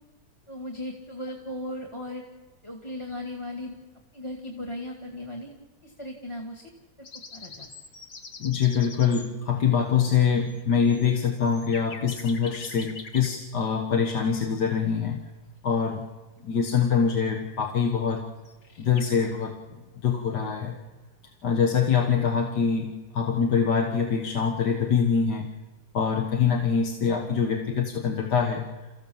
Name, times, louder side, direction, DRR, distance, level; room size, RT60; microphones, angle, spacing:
voice 1, 0.5-2.2 2.6-3.7 4.1-5.5 5.8-6.6 7.0-7.7, left 1 dB, 15° left, 1 dB, 2.1 m, -37 dB
sound 1, 7.0-9.3 10.2-10.3 10.4-13.5 17.8-17.9 18.2-18.3 18.4-19.5, left 4 dB, 55° left, 2.0 m, -44 dB
voice 2, 8.4-15.2 15.6-16.1 16.4-18.3 18.8-20.8 21.4-25.5 25.9-28.7, left 6 dB, 75° left, 2 dB, 2.1 m, -24 dB
29.0 x 15.0 x 7.2 m, 1.2 s
omnidirectional pair, 1.8 m